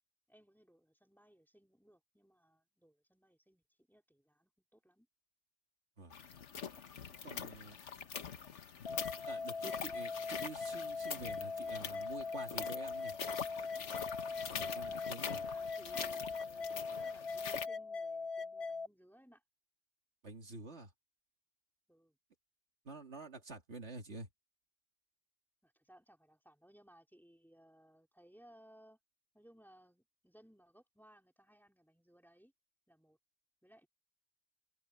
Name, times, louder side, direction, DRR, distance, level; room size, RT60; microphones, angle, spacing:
voice 1, 0.3-5.1 14.7-19.4 21.9-22.2 25.6-29.0 29.3-32.5 32.9-33.2 33.6-33.9, equal, ahead, 3.2 m, -64 dB
sound 1, 6.1-17.7, left 7 dB, 85° left, 1.4 m, -44 dB
voice 2, 7.2-7.8 9.3-13.1 14.6-15.4 20.2-20.9 22.8-24.3, right 3 dB, 70° right, 2.5 m, -48 dB
sound 2, 8.9-18.9, left 4 dB, 40° left, 0.5 m, -41 dB
open air
omnidirectional pair, 1.2 m